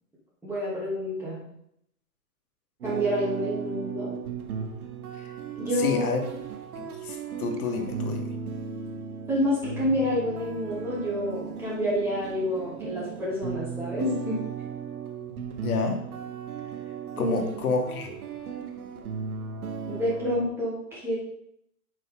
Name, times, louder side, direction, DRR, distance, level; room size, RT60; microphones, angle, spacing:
voice 1, 0.4-1.4 2.8-4.2 5.5-6.2 7.9-8.1 9.3-14.4 17.2-17.6 19.9-21.2, equal, 5° right, -8 dB, 3.0 m, -28 dB
sound 1, 2.8-20.5, right 6 dB, 80° right, 1.3 m, -36 dB
voice 2, 5.8-6.2 6.8-8.2 15.6-16.0 17.2-18.1, left 4 dB, 80° left, 4 dB, 1.8 m, -29 dB
9.3 x 5.5 x 3.8 m, 0.75 s
hypercardioid pair, 145°, 43 cm